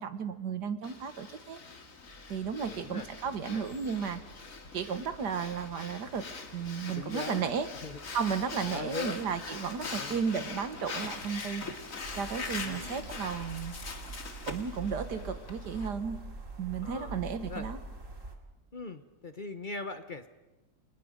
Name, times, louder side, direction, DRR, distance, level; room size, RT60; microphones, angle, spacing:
voice 1, 0.0-1.6 2.3-4.2 4.7-6.3 6.5-7.7 8.1-11.6 12.2-13.8 14.5-16.2 16.6-17.8, right 6 dB, 85° right, 10 dB, 2.0 m, -34 dB
Breathing, 0.8-15.9, left 4 dB, 55° left, 2.3 m, -43 dB
sound 1, 2.0-15.1, left 1 dB, 75° left, 6.9 m, -56 dB
voice 2, 2.7-3.6 6.9-8.0 8.6-9.2 9.9-10.2 12.6-13.1 15.0-15.4 16.8-17.7 18.7-20.3, left 3 dB, 35° left, 10 dB, 0.9 m, -41 dB
sound 2, 12.0-18.4, right 3 dB, 50° right, 2.7 m, -44 dB
29.5 x 24.5 x 5.2 m, 1.1 s
omnidirectional pair, 1.7 m